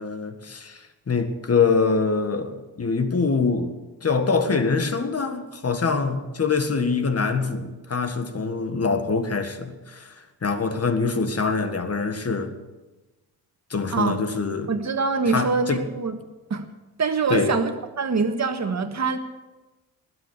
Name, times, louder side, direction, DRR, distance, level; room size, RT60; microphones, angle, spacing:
voice 1, 0.0-3.8 4.0-12.5 13.7-14.7 15.3-15.9 17.3-17.6, left 4 dB, 35° left, 8 dB, 1.8 m, -24 dB
voice 2, 14.7-16.1 16.5-16.6 17.0-17.7 18.0-19.2, right 4 dB, 40° right, 7 dB, 1.6 m, -24 dB
19.5 x 7.9 x 8.0 m, 1.1 s
cardioid pair, 65°, 40 cm